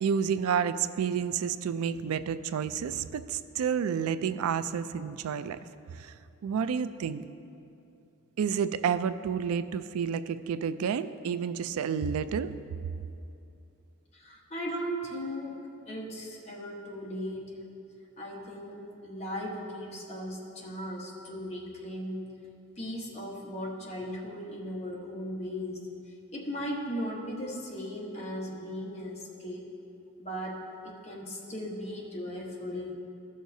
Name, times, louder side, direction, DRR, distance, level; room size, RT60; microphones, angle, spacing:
voice 1, 0.0-5.6 5.9-6.1 6.4-7.2 8.4-12.5, right 7 dB, 80° right, 13 dB, 0.3 m, -30 dB
voice 2, 14.1-15.6 15.9-17.6 18.2-22.3 22.8-25.9 26.3-29.7 30.2-32.9, equal, 30° left, -4 dB, 1.2 m, -37 dB
14.0 x 6.4 x 2.7 m, 2.6 s
head